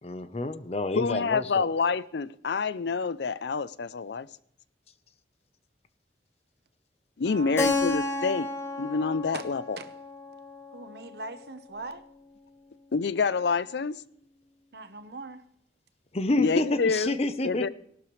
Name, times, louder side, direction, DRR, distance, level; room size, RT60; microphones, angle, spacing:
voice 1, 0.0-1.7 16.1-17.7, left 2 dB, 35° left, 0.8 m, -29 dB
voice 2, 1.0-4.3 7.2-8.5 8.8-9.8 12.9-14.0 16.4-17.1 17.4-17.7, left 4 dB, 75° left, 0.5 m, -27 dB
voice 3, 7.2-7.8 9.3-9.5 9.8-9.9 10.7-12.0 14.7-15.4, right 3 dB, 70° right, 1.1 m, -41 dB
Keyboard (musical), 7.6-12.1, left 2 dB, 15° left, 1.3 m, -32 dB
17.5 x 12.0 x 3.2 m
head